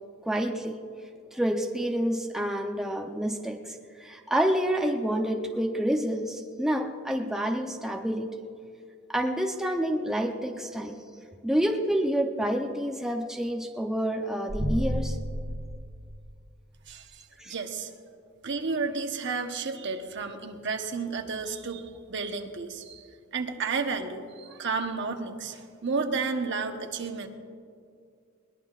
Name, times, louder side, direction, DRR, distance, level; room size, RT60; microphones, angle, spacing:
voice 1, 0.2-0.8 1.3-8.3 9.1-11.0 11.4-15.2 17.4-17.5, right 1 dB, ahead, 2 dB, 0.7 m, -28 dB
sound 1, 14.5-16.8, equal, 35° right, 1.9 m, -32 dB
voice 2, 16.9-17.9 18.4-23.0 23.3-27.3, right 4 dB, 55° right, 5 dB, 1.1 m, -32 dB
21.0 x 20.0 x 2.5 m, 2.3 s
head